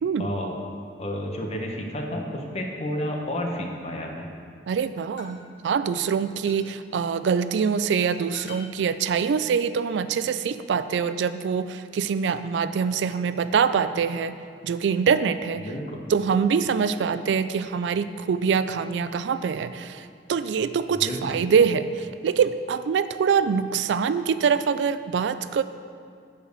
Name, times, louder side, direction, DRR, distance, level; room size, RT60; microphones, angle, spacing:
voice 1, 0.2-0.5 1.0-4.3 15.5-16.0 20.9-21.4 24.1-24.2, equal, 35° left, 1 dB, 0.9 m, -31 dB
sound 1, 3.3-3.8 5.2-5.3 6.5-6.7 7.6-7.7 8.3-8.7, left 5 dB, 80° left, 1.0 m, -45 dB
voice 2, 4.7-14.4 14.6-15.7 16.1-25.6, right 6 dB, 80° right, 13 dB, 0.3 m, -24 dB
7.3 x 5.1 x 6.6 m, 2.2 s
head